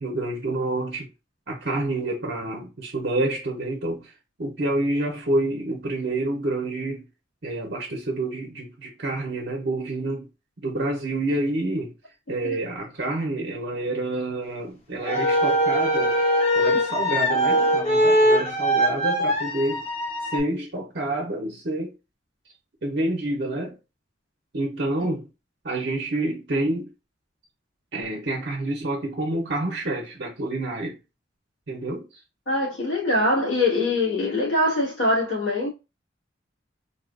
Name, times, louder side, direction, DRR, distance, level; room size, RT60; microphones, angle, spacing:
voice 1, 0.0-1.1 1.5-4.1 4.4-7.0 7.4-10.3 10.6-11.9 12.3-16.2 16.5-19.8 20.3-21.9 22.8-23.8 24.5-25.3 25.6-26.9 27.9-31.0 31.7-32.1, right 2 dB, 60° right, 0.9 m, -28 dB
sound 1, 15.0-20.4, equal, 35° left, 0.9 m, -21 dB
voice 2, 32.5-35.7, left 2 dB, 85° left, 1.7 m, -23 dB
4.0 x 2.4 x 2.5 m
head